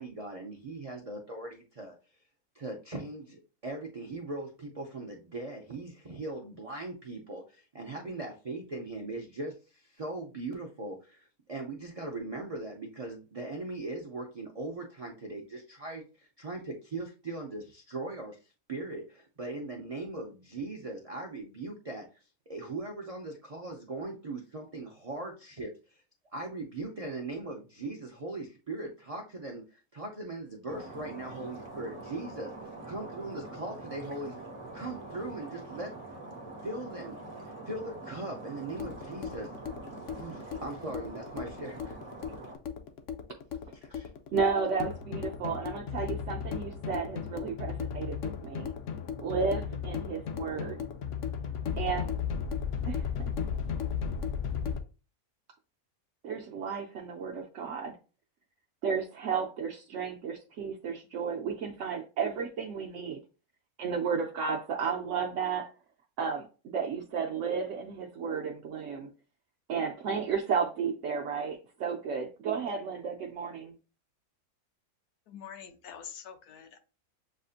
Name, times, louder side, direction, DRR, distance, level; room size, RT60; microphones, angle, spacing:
voice 1, 0.0-1.9 2.5-18.4 18.7-22.1 22.5-26.0 26.3-32.5 32.9-34.4 34.7-35.9 36.6-37.2 37.7-39.5 40.1-42.0 43.9-44.1, right 2 dB, 45° right, 0.4 m, -39 dB
Stream, 30.7-42.6, right 2 dB, 25° right, 1.0 m, -44 dB
sound 1, 38.6-54.8, left 7 dB, 65° left, 0.8 m, -35 dB
voice 2, 44.3-48.7 49.2-50.9 51.8-52.1 52.9-53.3 56.2-58.0 58.8-63.2 63.8-65.7 66.2-66.5 66.7-69.1 69.7-73.8, right 6 dB, 65° right, 0.9 m, -33 dB
voice 3, 75.3-76.8, left 8 dB, 90° left, 1.3 m, -45 dB
7.3 x 2.6 x 2.4 m
omnidirectional pair, 1.6 m